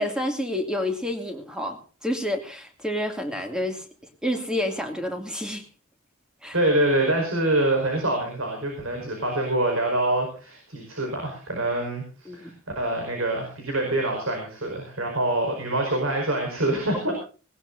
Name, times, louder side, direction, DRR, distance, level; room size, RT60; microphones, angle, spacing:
voice 1, 0.0-3.9 4.2-5.6 6.4-6.6 12.2-12.5, left 1 dB, 5° right, 5 dB, 2.4 m, -29 dB
voice 2, 6.5-17.1, right 1 dB, 65° right, 2 dB, 5.1 m, -25 dB
20.0 x 18.5 x 2.6 m, 0.37 s
head